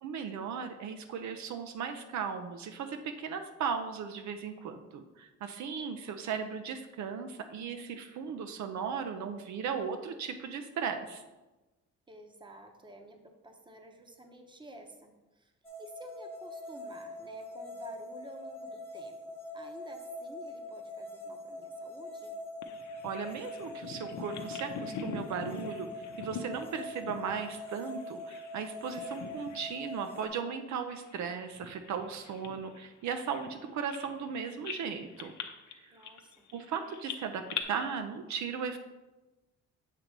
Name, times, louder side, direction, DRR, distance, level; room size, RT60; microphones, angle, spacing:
voice 1, 0.0-11.2 23.0-35.3 35.8-36.0 36.5-38.8, right 6 dB, 70° right, 7 dB, 0.6 m, -37 dB
voice 2, 12.1-15.5 15.8-22.4 35.9-36.5, right 1 dB, 15° right, 4 dB, 0.8 m, -51 dB
sound 1, 15.6-30.3, left 1 dB, 10° left, 1.0 m, -43 dB
Bird vocalization bird call bird song, 22.6-28.6 28.9-29.8 30.1-30.3 30.9-34.3 34.6-37.6, left 6 dB, 70° left, 0.7 m, -43 dB
7.5 x 3.0 x 5.1 m, 1.1 s
cardioid pair, 90°, 30 cm